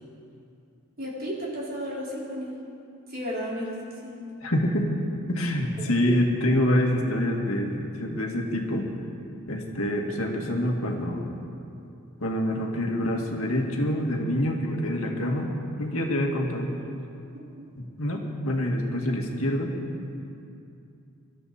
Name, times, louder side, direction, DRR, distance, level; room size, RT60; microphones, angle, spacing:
voice 1, 1.0-2.5 3.1-4.1 5.8-5.9 17.3-17.6, equal, 45° right, -6 dB, 4.3 m, -34 dB
voice 2, 4.4-4.9 5.3-8.9 9.5-11.3 12.2-15.5 15.8-16.7 17.8-19.7, left 1 dB, 75° left, 1 dB, 2.0 m, -26 dB
25.0 x 12.5 x 4.2 m, 2.6 s
head